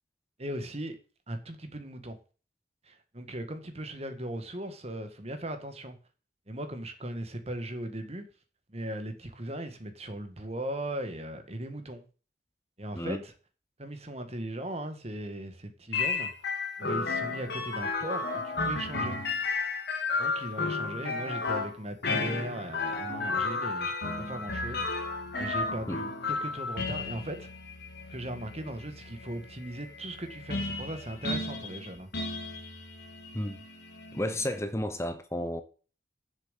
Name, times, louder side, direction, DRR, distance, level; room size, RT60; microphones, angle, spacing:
voice 1, 0.4-1.0 1.3-2.2 2.9-6.0 6.5-8.2 8.7-12.0 12.8-13.2 13.8-16.3 16.8-19.2 20.2-24.9 25.4-27.5 28.1-32.1, right 1 dB, 35° right, 1.7 m, -38 dB
sound 1, 15.9-34.6, left 3 dB, 55° left, 1.9 m, -33 dB
voice 2, 34.1-35.6, left 1 dB, 15° left, 0.9 m, -32 dB
7.4 x 7.3 x 8.3 m
head